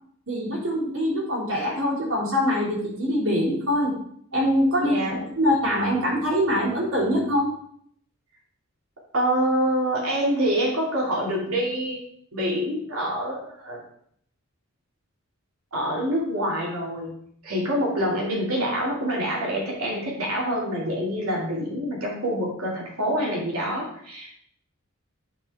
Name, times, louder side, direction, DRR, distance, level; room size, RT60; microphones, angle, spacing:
voice 1, 0.3-4.0 4.3-7.5, equal, 75° right, -7 dB, 3.1 m, -24 dB
voice 2, 4.8-5.2 9.1-12.0 12.3-13.8 15.7-17.1 17.4-24.4, equal, 90° right, -3 dB, 2.6 m, -26 dB
10.5 x 4.8 x 3.5 m, 0.66 s
head